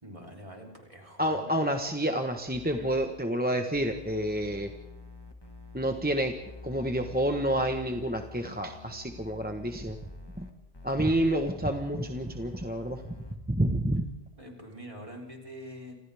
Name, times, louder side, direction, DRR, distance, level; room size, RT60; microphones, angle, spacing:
voice 1, 0.0-1.5 14.4-15.9, equal, 30° right, 0 dB, 3.7 m, -45 dB
voice 2, 1.2-4.7 5.7-6.3 6.6-10.0 10.4-10.5 10.8-13.0 13.5-14.1, right 1 dB, 10° right, 4 dB, 1.2 m, -29 dB
sound 1, 2.5-3.1 3.7-13.4, left 3 dB, 25° left, 1.6 m, -47 dB
29.0 x 26.5 x 3.5 m, 0.90 s
omnidirectional pair, 1.1 m